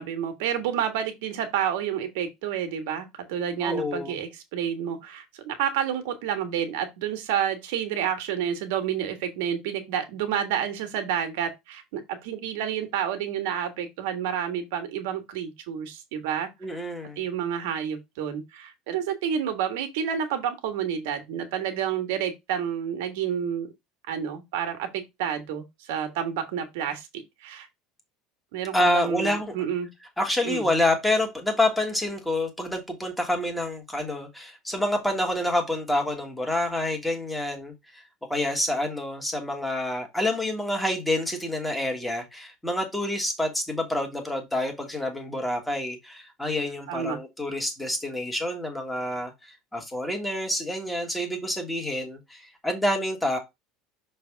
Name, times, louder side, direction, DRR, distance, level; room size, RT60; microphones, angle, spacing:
voice 1, 0.0-16.5 17.1-23.7 24.1-27.7 28.5-29.9 30.4-30.7 46.9-47.2, right 9 dB, 75° right, 1.6 m, -29 dB
voice 2, 3.6-4.2 16.6-17.2 28.7-29.5 30.2-38.0 38.3-53.4, left 1 dB, 5° left, 1.4 m, -27 dB
6.4 x 3.4 x 4.6 m
cardioid pair, 175°, 0 cm